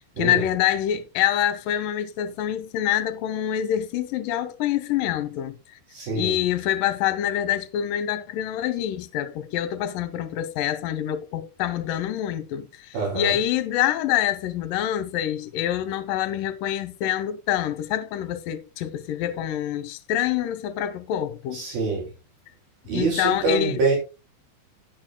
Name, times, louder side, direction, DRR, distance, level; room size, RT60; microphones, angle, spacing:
voice 1, 0.0-5.8 6.1-21.6 22.9-23.9, left 11 dB, 70° left, 2.3 m, -26 dB
voice 2, 5.9-6.4 12.9-13.4 21.5-22.1 22.8-24.0, right 4 dB, 65° right, 4.6 m, -25 dB
18.0 x 6.5 x 2.3 m
omnidirectional pair, 4.6 m